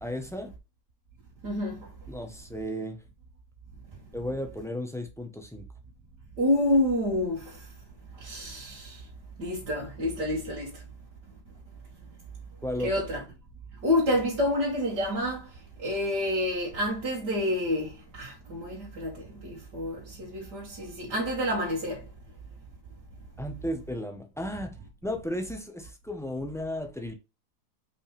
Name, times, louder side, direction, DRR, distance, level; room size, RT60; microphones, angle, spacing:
voice 1, 0.0-0.5 2.1-3.0 4.1-5.6 12.6-12.9 23.4-24.8 25.0-27.1, left 1 dB, ahead, 0.8 m, -34 dB
voice 2, 1.4-1.9 6.4-7.5 8.2-9.0 9.4-10.7 12.8-13.2 13.8-15.5 15.8-22.0, left 1 dB, 80° right, 2.7 m, -28 dB
5.3 x 5.2 x 3.4 m
omnidirectional pair, 1.8 m